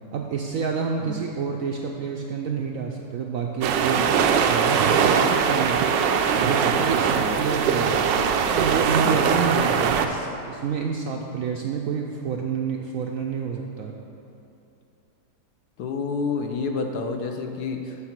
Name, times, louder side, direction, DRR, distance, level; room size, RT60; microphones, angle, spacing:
voice 1, 0.1-5.9 6.4-8.1 8.5-13.9, right 6 dB, 70° right, 1 dB, 0.8 m, -28 dB
sound 1, 3.6-10.1, right 6 dB, 90° right, 1.3 m, -21 dB
voice 2, 15.8-18.0, left 4 dB, 70° left, 4 dB, 1.1 m, -29 dB
8.0 x 5.9 x 5.9 m, 2.6 s
omnidirectional pair, 1.9 m